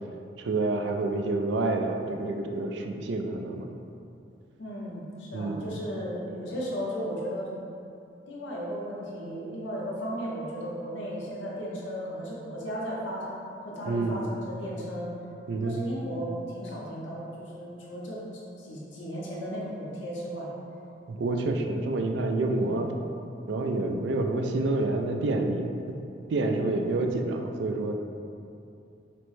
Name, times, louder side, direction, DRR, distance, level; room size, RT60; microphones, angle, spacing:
voice 1, 0.4-3.7 5.3-5.7 13.9-14.2 15.5-15.8 21.1-22.9 23.5-26.0 26.3-27.9, right 2 dB, 65° right, 4 dB, 0.3 m, -28 dB
voice 2, 4.6-7.5 8.3-15.1 15.6-18.2 18.6-20.5 22.4-22.8 26.4-26.9, equal, 85° left, -5 dB, 0.9 m, -35 dB
5.9 x 2.1 x 3.1 m, 2.6 s
head